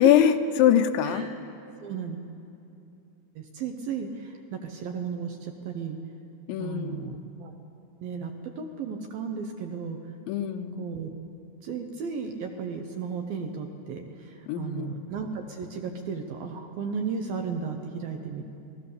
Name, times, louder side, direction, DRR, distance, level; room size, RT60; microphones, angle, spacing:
voice 1, 0.0-1.2 6.5-7.2 10.3-10.8 14.5-14.9, left 10 dB, 80° left, 8 dB, 3.1 m, -23 dB
voice 2, 1.8-2.3 3.4-6.0 6.6-7.5 8.0-10.0 10.8-11.1 11.6-18.5, right 5 dB, 70° right, 3 dB, 2.4 m, -34 dB
29.5 x 20.0 x 6.9 m, 2.7 s
omnidirectional pair, 5.4 m